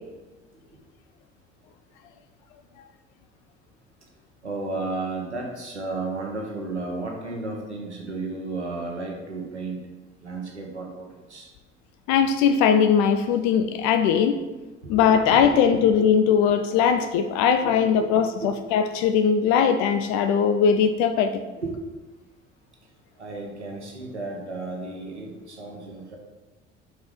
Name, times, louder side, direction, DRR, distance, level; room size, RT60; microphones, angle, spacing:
voice 1, 4.4-9.8 10.2-11.5 14.8-15.6 17.6-18.1 18.4-18.5 21.6-21.7 23.2-26.2, right 3 dB, 90° right, 0 dB, 1.1 m, -33 dB
voice 2, 12.1-14.4 14.9-21.4, left 7 dB, 55° left, 8 dB, 0.5 m, -20 dB
4.7 x 4.2 x 5.1 m, 1.2 s
figure-of-eight pair, 60°, 33 cm